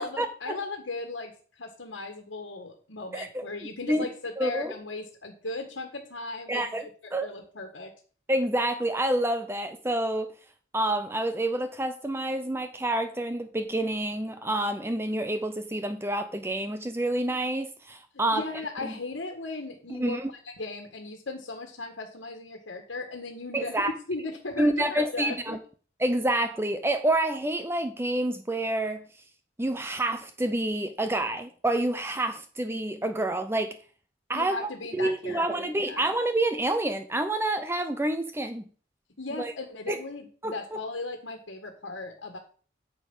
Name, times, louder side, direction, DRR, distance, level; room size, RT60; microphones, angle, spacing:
voice 1, 0.0-7.9 18.3-25.6 34.3-36.1 39.2-42.4, left 3 dB, 90° left, 1.7 m, -37 dB
voice 2, 3.1-3.5 3.9-4.1 4.4-4.7 6.5-6.9 7.1-7.3 8.3-10.3 10.7-18.4 18.8-18.9 19.9-20.3 23.5-23.9 24.6-25.6 26.0-29.1 29.6-33.8 34.3-38.7 39.4-39.5 39.9-40.0 40.4-40.5, right 1 dB, 15° right, 0.6 m, -28 dB
8.9 x 7.2 x 5.5 m
head